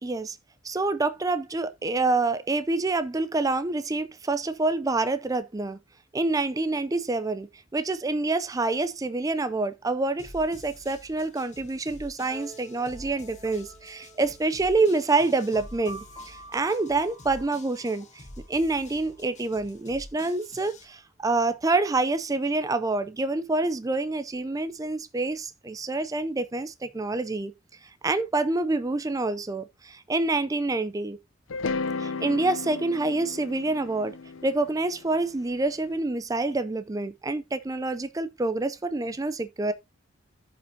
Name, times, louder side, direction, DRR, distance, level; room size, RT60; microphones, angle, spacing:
voice 1, 0.0-0.4 0.6-5.8 6.1-18.2 18.5-27.5 27.8-31.2 32.0-34.2 34.4-39.7, right 3 dB, 15° right, 0.4 m, -27 dB
sound 1, 10.2-20.8, left 2 dB, 35° left, 1.6 m, -48 dB
sound 2, 12.3-19.8, right 1 dB, 20° left, 2.5 m, -49 dB
sound 3, 31.5-35.7, left 4 dB, 80° left, 0.6 m, -34 dB
14.5 x 5.2 x 2.7 m
head